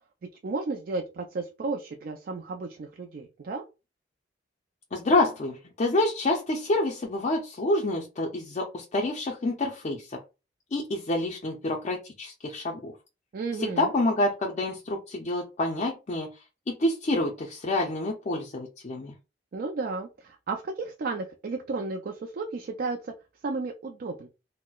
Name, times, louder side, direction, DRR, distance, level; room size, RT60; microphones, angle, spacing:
voice 1, 0.2-3.6 13.3-13.9 19.5-23.1 23.4-24.3, right 3 dB, 55° right, 0.4 m, -33 dB
voice 2, 4.9-10.2 10.7-12.9 13.6-16.3 16.7-19.1, left 2 dB, 40° left, 0.4 m, -27 dB
3.9 x 2.0 x 2.2 m
head